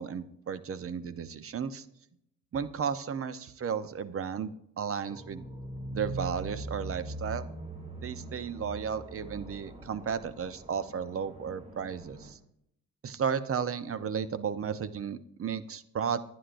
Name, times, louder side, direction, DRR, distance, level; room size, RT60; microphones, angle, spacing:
voice 1, 0.0-1.8 2.5-5.4 5.9-7.5 8.0-12.4 13.0-16.2, right 7 dB, 45° right, 12 dB, 1.0 m, -34 dB
sound 1, 5.0-12.3, right 1 dB, 25° right, 2.9 m, -42 dB
22.0 x 9.7 x 2.6 m, 0.75 s
cardioid pair, 90°, 30 cm